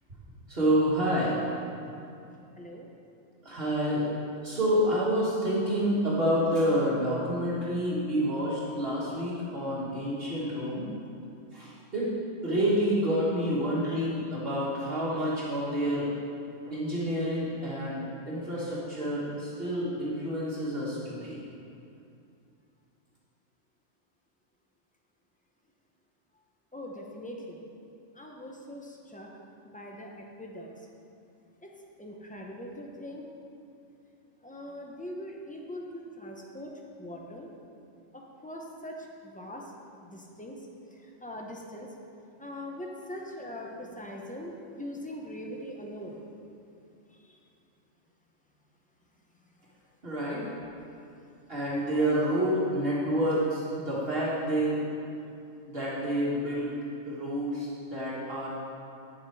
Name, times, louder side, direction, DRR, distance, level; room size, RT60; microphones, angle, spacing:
voice 1, 0.5-1.4 3.5-4.0 4.4-10.8 11.5-12.1 12.4-16.1 16.7-21.4 50.0-50.4 51.5-54.8 55.6-56.7 57.0-58.5, equal, 50° right, -7 dB, 1.8 m, -28 dB
voice 2, 2.6-2.9 26.7-27.6 28.1-29.3 29.6-30.7 31.6-31.7 32.0-33.2 34.4-36.7 37.0-37.5 38.1-39.7 40.0-40.6 40.9-41.9 42.4-46.2 47.1-47.4, left 1 dB, 5° left, -1 dB, 0.8 m, -41 dB
9.5 x 7.4 x 4.8 m, 2.6 s
omnidirectional pair, 1.3 m